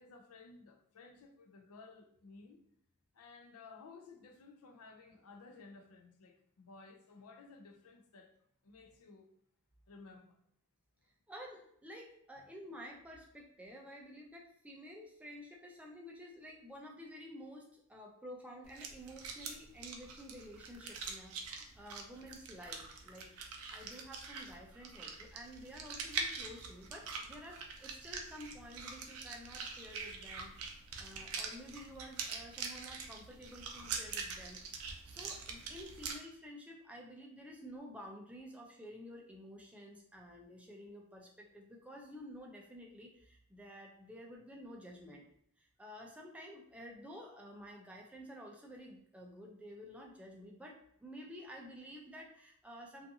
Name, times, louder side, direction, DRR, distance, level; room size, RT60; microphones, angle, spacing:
voice 1, 0.0-2.6 3.1-8.4 8.6-9.3 9.9-10.4, left 4 dB, 75° left, 0.4 m, -56 dB
voice 2, 11.3-34.6 35.0-45.2 45.6-53.1, equal, 5° right, 0.3 m, -51 dB
sound 1, 18.6-36.1, right 5 dB, 70° right, 0.4 m, -44 dB
2.6 x 2.4 x 2.6 m
head